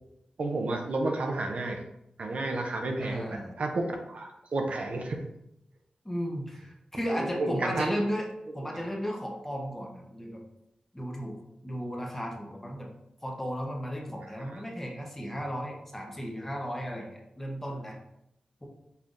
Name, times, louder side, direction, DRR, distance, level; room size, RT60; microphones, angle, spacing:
voice 1, 0.4-1.8 2.2-5.2 7.1-7.9 14.5-14.6, right 2 dB, 65° right, 3 dB, 0.6 m, -31 dB
voice 2, 3.0-3.5 6.0-8.3 8.5-10.4 10.9-11.4 11.6-12.9 13.2-18.0 18.6-18.7, equal, 15° left, -1 dB, 0.8 m, -34 dB
5.4 x 3.3 x 2.6 m, 0.82 s
wide cardioid pair, 110°, 2 cm